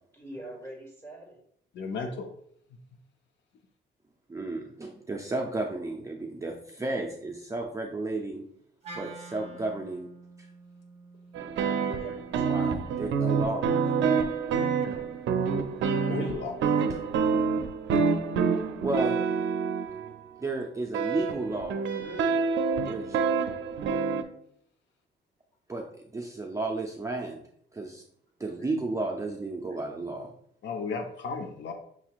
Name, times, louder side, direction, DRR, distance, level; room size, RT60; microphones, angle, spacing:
voice 1, 0.1-1.4 11.9-12.4 22.0-22.5 28.6-28.7, right 1 dB, 15° left, 0 dB, 1.6 m, -43 dB
voice 2, 1.7-2.3 16.1-16.6 30.6-31.7, left 4 dB, 65° left, 5 dB, 0.6 m, -34 dB
voice 3, 4.3-8.4 9.0-10.1 11.4-11.5 12.5-13.7 17.3-17.5 18.8-19.1 20.4-21.8 22.8-23.2 25.7-27.4 27.7-28.0 28.4-30.3, right 2 dB, 15° right, 0 dB, 0.5 m, -33 dB
Wind instrument woodwind instrument, 8.8-13.1, right 3 dB, 30° right, 0.9 m, -48 dB
sound 1, 11.3-20.1 20.9-24.2, right 5 dB, 70° right, 0.5 m, -27 dB
6.0 x 2.8 x 2.4 m, 0.67 s
cardioid pair, 90°, 20 cm